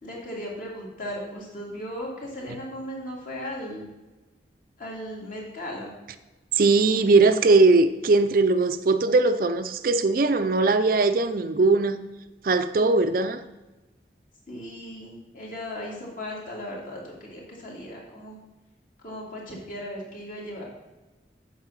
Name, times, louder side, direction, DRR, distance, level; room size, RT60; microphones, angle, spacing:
voice 1, 0.0-3.8 4.8-5.9 14.5-18.4 19.0-20.6, equal, 50° left, -4 dB, 2.9 m, -37 dB
voice 2, 6.6-12.0 12.4-13.4, right 3 dB, 50° right, 10 dB, 0.5 m, -20 dB
8.3 x 5.5 x 6.5 m, 1.2 s
head